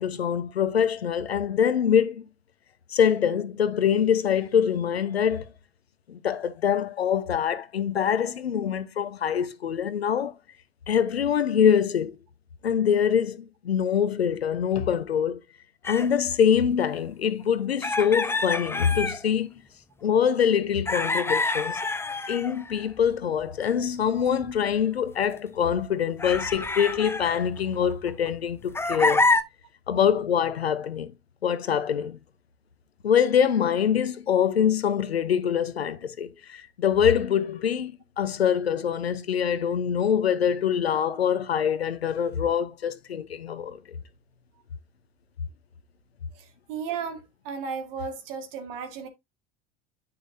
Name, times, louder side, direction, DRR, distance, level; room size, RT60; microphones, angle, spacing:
voice 1, 0.0-2.2 2.9-5.5 6.1-10.3 10.9-12.2 12.6-15.4 15.8-19.5 20.0-21.8 22.3-29.3 29.9-31.1 31.4-32.2 33.0-43.8, left 8 dB, 85° left, 0.8 m, -24 dB
sound 1, 15.9-16.1 17.8-19.2 20.9-23.1 24.3-24.5 25.2-25.3 26.2-28.3 28.7-29.4, left 3 dB, 10° left, 0.7 m, -27 dB
voice 2, 46.4-49.1, right 6 dB, 65° right, 2.0 m, -35 dB
9.5 x 5.6 x 2.7 m
figure-of-eight pair, 70°, 31 cm